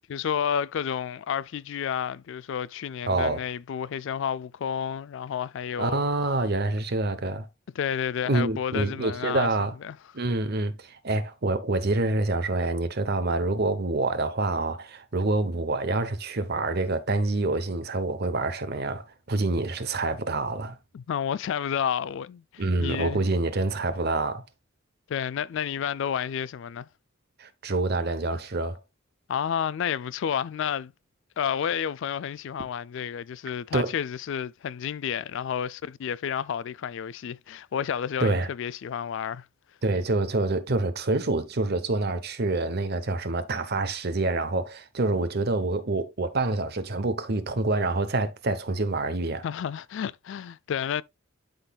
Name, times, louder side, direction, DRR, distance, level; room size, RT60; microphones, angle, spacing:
voice 1, 0.1-6.0 7.8-9.5 9.8-10.0 20.9-23.2 25.1-26.9 29.3-30.9 31.4-39.5 49.4-51.0, left 8 dB, 60° left, 0.3 m, -30 dB
voice 2, 3.1-3.4 5.8-7.5 8.3-9.7 10.1-20.8 22.6-24.4 27.4-28.8 33.7-33.9 38.2-38.5 39.8-49.4, right 2 dB, 50° right, 0.8 m, -27 dB
12.0 x 3.9 x 2.3 m
head